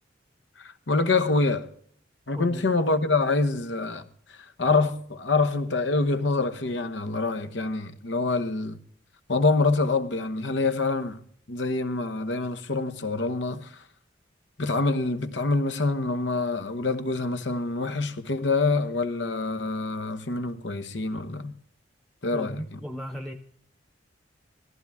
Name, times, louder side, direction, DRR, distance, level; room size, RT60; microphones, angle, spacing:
voice 1, 0.6-1.7 2.3-4.0 4.4-8.8 9.3-11.2 11.5-13.7 14.6-21.5 22.2-22.9, left 3 dB, 80° left, 1.1 m, -26 dB
voice 2, 22.3-23.3, equal, ahead, 0.8 m, -36 dB
18.0 x 14.5 x 3.6 m
head